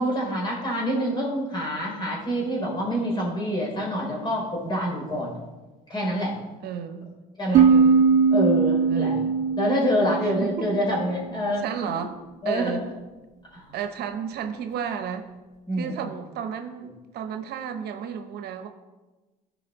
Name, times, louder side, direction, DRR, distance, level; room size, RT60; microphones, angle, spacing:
voice 1, 0.0-5.4 5.9-6.3 7.4-7.7 8.3-9.2 9.6-11.7 12.4-12.7 13.5-13.7 15.7-16.0, equal, 25° left, -2 dB, 3.6 m, -26 dB
voice 2, 6.6-7.1 7.5-8.1 8.9-9.3 10.2-10.8 11.6-12.1 12.4-12.9 13.7-15.3 15.7-18.7, right 7 dB, 70° right, 7 dB, 0.9 m, -32 dB
sound 1, 7.5-11.1, right 5 dB, 45° right, 0.4 m, -20 dB
14.5 x 5.1 x 4.0 m, 1.2 s
cardioid pair, 110°, 17 cm